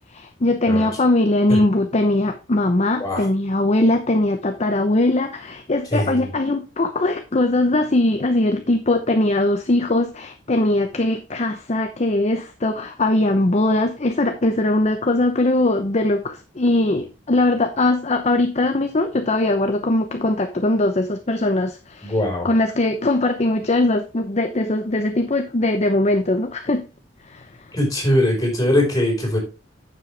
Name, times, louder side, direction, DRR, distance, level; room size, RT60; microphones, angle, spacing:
voice 1, 0.1-22.2 22.4-26.9 27.2-27.5, left 2 dB, 35° left, 7 dB, 0.8 m, -20 dB
voice 2, 5.9-6.3 22.0-22.5 27.7-29.4, left 1 dB, 20° left, 0 dB, 4.8 m, -21 dB
9.6 x 7.6 x 3.4 m, 0.30 s
head